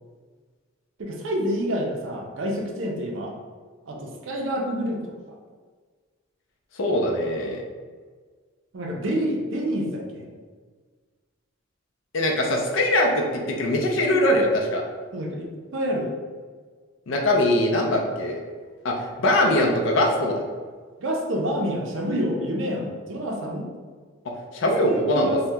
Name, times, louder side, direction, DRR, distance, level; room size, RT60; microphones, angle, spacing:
voice 1, 1.0-3.4 3.9-5.1 8.7-10.3 15.1-15.5 15.7-16.1 21.0-23.7 24.8-25.4, equal, 65° right, 1 dB, 0.5 m, -28 dB
voice 2, 6.8-7.6 12.1-14.8 17.1-18.4 18.8-20.4 24.5-25.4, left 1 dB, 65° left, 1 dB, 0.5 m, -22 dB
2.7 x 2.1 x 3.3 m, 1.5 s
head